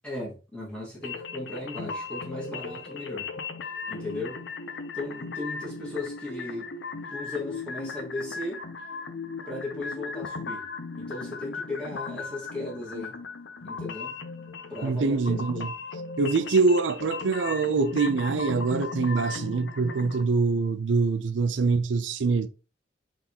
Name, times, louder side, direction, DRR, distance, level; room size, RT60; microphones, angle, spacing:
voice 1, 0.0-3.3 3.9-4.4 4.9-6.7 7.1-8.6 9.5-10.6 10.9-13.1 13.6-14.1 14.7-15.5 21.5-21.6, left 2 dB, 5° left, 1.6 m, -36 dB
sound 1, 1.0-20.2, left 4 dB, 70° left, 0.6 m, -37 dB
voice 2, 14.8-15.7 16.2-22.5, right 4 dB, 80° right, 0.5 m, -24 dB
4.0 x 3.6 x 2.8 m
head